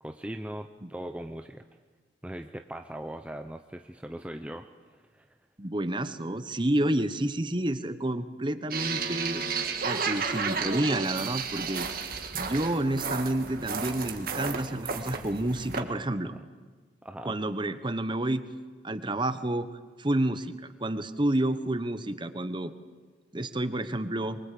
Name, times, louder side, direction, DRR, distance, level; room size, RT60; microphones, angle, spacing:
voice 1, 0.0-1.6 2.2-5.3 16.2-16.4 17.0-17.4, right 1 dB, 5° right, 6 dB, 0.7 m, -40 dB
voice 2, 5.6-9.4 9.8-11.9 12.3-16.3 17.2-18.4 18.8-19.7 20.0-20.5 20.8-22.7 23.3-24.4, right 1 dB, 25° right, 12 dB, 1.1 m, -29 dB
sound 1, 8.7-15.8, right 5 dB, 50° right, 2.0 m, -32 dB
23.5 x 23.0 x 8.5 m, 1.4 s
head